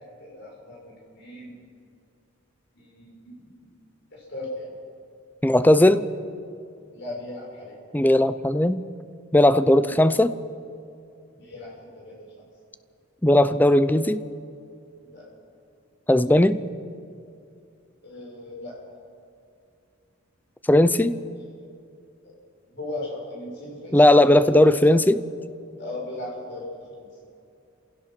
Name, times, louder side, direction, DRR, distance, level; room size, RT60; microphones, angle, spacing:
voice 1, 0.2-1.6 2.7-3.7 4.1-4.7 6.9-7.8 9.9-10.0 11.3-12.2 15.0-15.3 18.0-18.8 22.7-24.8 25.8-26.7 27.0-27.1, left 1 dB, 60° left, -3 dB, 6.7 m, -37 dB
voice 2, 5.4-6.0 7.9-8.8 9.3-10.3 13.2-14.2 16.1-16.6 20.7-21.2 23.9-25.2, left 1 dB, 10° left, 13 dB, 0.6 m, -17 dB
27.0 x 17.0 x 5.9 m, 2.5 s
head